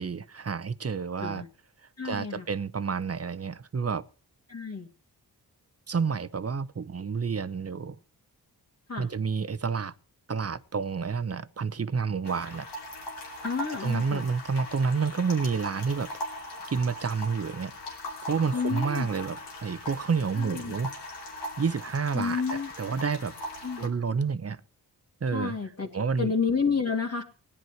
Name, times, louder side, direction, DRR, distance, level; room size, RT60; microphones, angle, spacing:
voice 1, 0.0-1.4 2.0-4.0 5.9-8.0 9.0-9.9 10.3-12.7 13.7-16.1 16.7-17.7 18.3-20.9 21.6-23.3 23.8-24.6 25.2-25.6 25.9-26.3, right 5 dB, 35° right, 0.9 m, -29 dB
voice 2, 2.0-2.4 4.5-4.9 8.9-9.1 13.4-14.2 18.5-19.1 20.4-20.7 22.1-22.7 23.6-23.9 25.3-25.9 26.2-27.2, left 5 dB, 40° left, 2.2 m, -30 dB
sound 1, 12.2-23.9, left 1 dB, 90° left, 2.9 m, -40 dB
17.5 x 10.0 x 4.6 m
cardioid pair, 50°, 40 cm